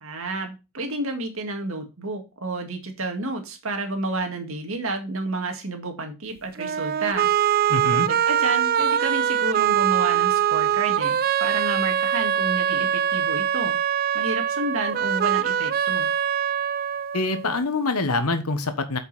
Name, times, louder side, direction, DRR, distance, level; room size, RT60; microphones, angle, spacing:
voice 1, 0.0-7.3 7.9-13.8 14.1-16.1, right 2 dB, 65° right, 4 dB, 2.0 m, -30 dB
sound 1, 6.6-17.6, right 9 dB, 40° right, 0.4 m, -23 dB
voice 2, 7.7-8.1 17.1-19.0, left 3 dB, 85° left, 9 dB, 1.3 m, -25 dB
8.4 x 5.5 x 4.2 m, 0.27 s
head